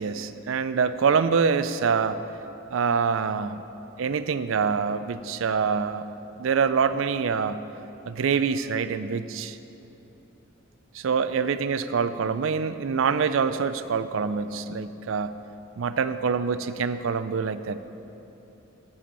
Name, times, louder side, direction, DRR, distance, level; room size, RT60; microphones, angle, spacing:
voice 1, 0.0-2.2 2.7-3.6 4.0-6.1 6.4-7.6 8.1-9.6 10.9-15.4 15.8-17.8, right 6 dB, 75° right, 12 dB, 0.4 m, -25 dB
7.7 x 7.0 x 8.2 m, 2.9 s
head